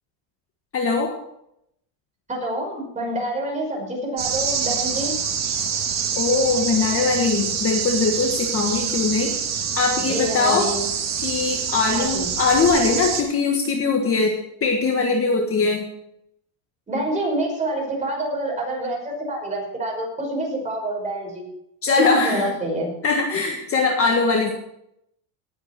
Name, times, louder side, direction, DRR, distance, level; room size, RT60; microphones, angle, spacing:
voice 1, 0.7-1.1 6.1-10.7 11.2-15.9 21.8-22.5 23.0-24.5, left 4 dB, 30° left, 2 dB, 1.6 m, -21 dB
voice 2, 2.3-5.1 10.0-10.8 11.9-12.3 16.9-21.5 22.0-22.9, right 1 dB, 15° right, -1 dB, 5.8 m, -27 dB
sound 1, 4.2-13.2, right 7 dB, 35° right, 2.3 m, -26 dB
18.5 x 8.3 x 4.6 m, 0.77 s
cardioid pair, 140°, 48 cm